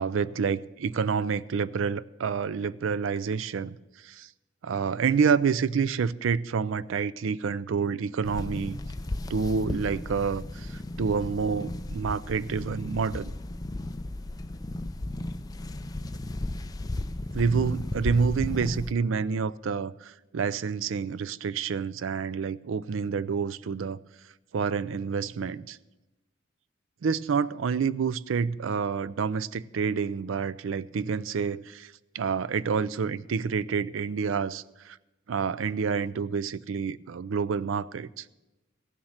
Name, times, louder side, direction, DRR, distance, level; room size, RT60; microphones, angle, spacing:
voice 1, 0.0-3.8 4.0-4.3 4.6-8.8 9.3-13.3 17.3-24.0 24.5-25.8 27.0-35.0 35.3-38.2, right 5 dB, 75° right, 0.4 m, -28 dB
sound 1, 8.2-18.9, left 1 dB, 20° left, 0.4 m, -35 dB
15.5 x 7.2 x 6.4 m
head